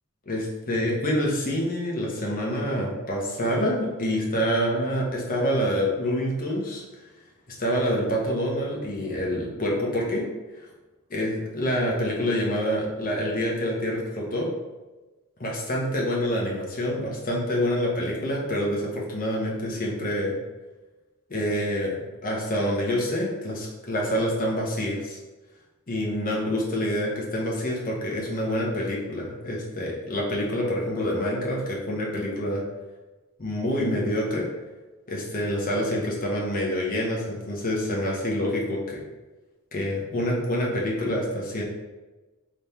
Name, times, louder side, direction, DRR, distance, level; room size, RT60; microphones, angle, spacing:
voice 1, 0.3-6.8 7.6-10.2 11.1-14.5 15.4-20.3 21.3-22.0 22.2-25.2 25.9-32.6 33.4-34.5 35.1-39.0 39.7-41.6, equal, 40° left, -3 dB, 1.0 m, -27 dB
3.5 x 3.2 x 4.2 m, 1.1 s
head